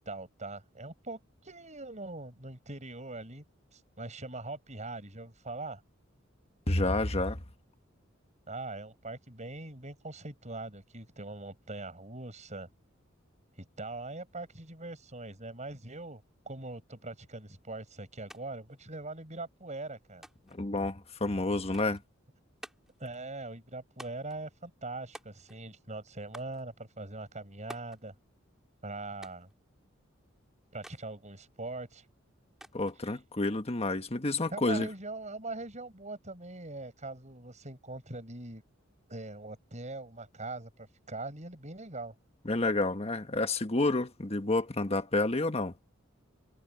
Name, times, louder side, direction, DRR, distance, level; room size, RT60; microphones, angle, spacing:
voice 1, 0.0-3.4 3.7-5.8 8.5-12.7 13.6-20.2 23.0-28.1 28.8-29.5 30.7-32.1 34.5-38.6 39.1-42.1, right 2 dB, 35° right, 7.4 m, -42 dB
voice 2, 6.7-7.4 20.5-22.0 32.7-34.9 42.4-45.7, left 2 dB, 30° left, 1.4 m, -29 dB
sound 1, 18.3-18.4 18.7-19.4 20.2-20.6 21.7-22.1 22.6-23.0 24.0-24.4 25.1-25.7 26.3-26.6 27.7-28.0 29.2-29.5 30.8-31.1 32.6-33.0, equal, ahead, 4.1 m, -50 dB
head